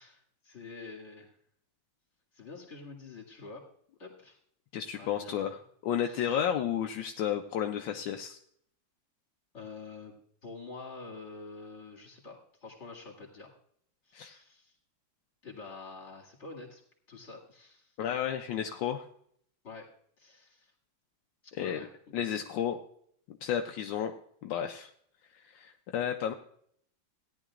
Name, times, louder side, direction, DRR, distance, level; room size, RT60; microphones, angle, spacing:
voice 1, 0.0-1.4 2.3-3.6 4.0-4.4 4.9-5.5 6.0-6.4 9.5-10.2 10.4-13.5 14.0-14.8 15.4-16.8 17.1-18.0 19.6-19.9 20.2-20.7 21.4-22.1, left 4 dB, 35° left, -2 dB, 2.5 m, -47 dB
voice 2, 4.7-8.4 14.1-14.4 18.0-19.1 21.6-21.9 22.1-22.8 23.4-24.1 24.4-24.9 25.4-26.3, left 9 dB, 80° left, 4 dB, 1.3 m, -32 dB
17.0 x 10.5 x 2.4 m, 0.65 s
omnidirectional pair, 2.1 m